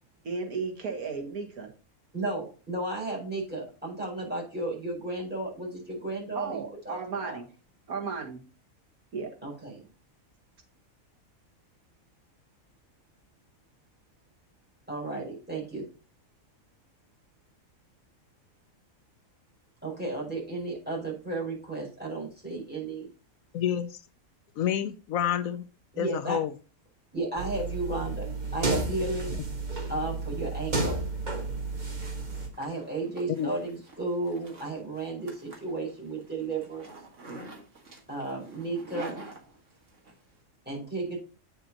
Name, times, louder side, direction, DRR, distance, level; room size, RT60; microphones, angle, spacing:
voice 1, 0.2-1.7 6.4-7.4 7.9-8.4 9.1-9.3, right 5 dB, 85° right, 2.0 m, -34 dB
voice 2, 2.1-7.4 9.4-9.8 14.9-15.8 19.8-23.1 25.9-26.4 27.1-28.2 28.5-29.4 29.9-31.0 32.6-36.9 38.1-39.2 40.6-41.2, right 2 dB, 5° right, 4.8 m, -33 dB
voice 3, 23.5-24.0 24.6-25.6 26.0-26.5 33.4-33.5, left 9 dB, 75° left, 1.0 m, -28 dB
sound 1, 27.4-32.5, right 3 dB, 35° right, 1.5 m, -32 dB
Zipper (clothing), 31.5-40.1, right 2 dB, 60° right, 2.1 m, -47 dB
8.7 x 6.7 x 2.8 m
omnidirectional pair, 1.5 m